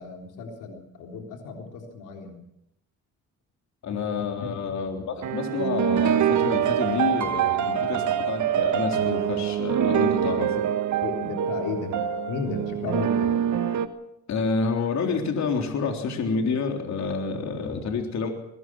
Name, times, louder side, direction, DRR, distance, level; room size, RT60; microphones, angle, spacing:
voice 1, 0.0-2.4 4.4-4.5 11.0-13.4, left 5 dB, 90° left, 2 dB, 3.7 m, -34 dB
voice 2, 3.8-10.6 14.3-18.3, left 4 dB, 65° left, 3 dB, 3.8 m, -28 dB
sound 1, 5.2-13.9, right 9 dB, 70° right, 1.5 m, -25 dB
22.5 x 19.0 x 6.3 m, 0.81 s
cardioid pair, 90°, 30 cm